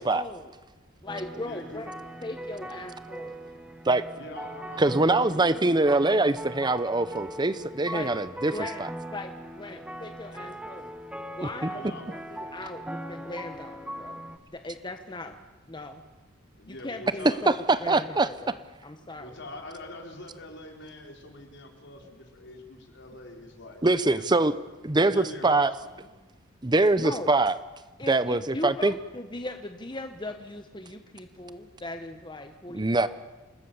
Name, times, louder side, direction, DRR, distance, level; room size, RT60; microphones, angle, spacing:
voice 1, 0.1-0.5 1.0-2.0 2.2-3.4 7.9-8.2 8.5-8.8 9.1-10.9 11.3-14.2 14.5-15.4 15.7-16.0 16.7-19.4 26.9-27.3 28.0-33.1, left 2 dB, 20° left, 6 dB, 1.2 m, -39 dB
sound 1, 1.1-14.4, right 1 dB, 5° right, 1.3 m, -40 dB
voice 2, 1.4-1.8 4.2-5.9 11.7-12.2 16.6-17.4 19.0-24.5 25.0-26.1, left 2 dB, 60° left, 3 dB, 4.6 m, -44 dB
voice 3, 4.8-8.5 8.8-8.9 11.6-11.7 17.5-18.3 23.8-24.5 24.8-25.7 26.6-27.6 28.1-28.9 32.7-33.1, right 2 dB, 20° right, 14 dB, 0.7 m, -23 dB
28.0 x 20.5 x 7.2 m, 1.2 s
head